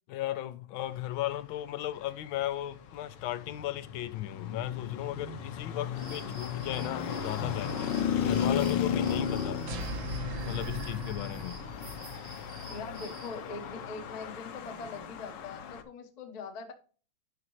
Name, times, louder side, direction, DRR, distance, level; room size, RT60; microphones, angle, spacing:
voice 1, 0.1-9.6 10.4-11.6, left 13 dB, 85° left, 1.4 m, -36 dB
Traffic noise roadway noise, 2.1-15.8, left 7 dB, 65° left, 1.3 m, -35 dB
sound 1, 6.0-13.4, right 2 dB, 90° right, 4.3 m, -50 dB
sound 2, 9.7-12.2, right 2 dB, 75° right, 1.8 m, -39 dB
voice 2, 12.7-16.7, left 4 dB, 35° left, 0.6 m, -42 dB
9.7 x 5.1 x 3.0 m
omnidirectional pair, 2.2 m